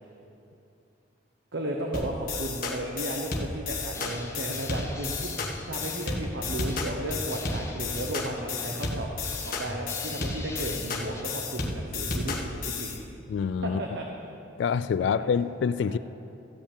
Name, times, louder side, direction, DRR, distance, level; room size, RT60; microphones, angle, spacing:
voice 1, 1.5-5.3 5.7-9.1 9.4-12.9 13.6-14.0 15.0-15.3 15.8-16.0, right 1 dB, 75° right, 0 dB, 1.0 m, -34 dB
sound 1, 1.9-13.0, left 3 dB, 50° left, 1.4 m, -33 dB
Drum kit, 3.9-11.2, left 1 dB, 15° left, 1.0 m, -41 dB
voice 2, 13.3-13.8 14.6-16.0, left 6 dB, 75° left, 15 dB, 0.3 m, -26 dB
14.0 x 5.5 x 8.5 m, 2.6 s
head